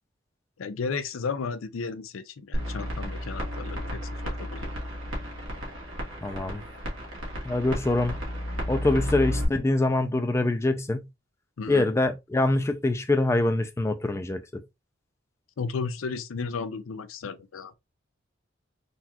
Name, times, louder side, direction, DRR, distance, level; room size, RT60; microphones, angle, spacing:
voice 1, 0.6-4.7 11.6-11.9 15.6-17.7, left 5 dB, 85° left, 0.5 m, -34 dB
sound 1, 2.5-9.4, equal, 80° right, 1.4 m, -33 dB
voice 2, 6.2-6.6 7.4-8.2 8.7-11.1 11.7-14.6, left 2 dB, 15° left, 0.3 m, -24 dB
4.0 x 2.3 x 2.8 m
head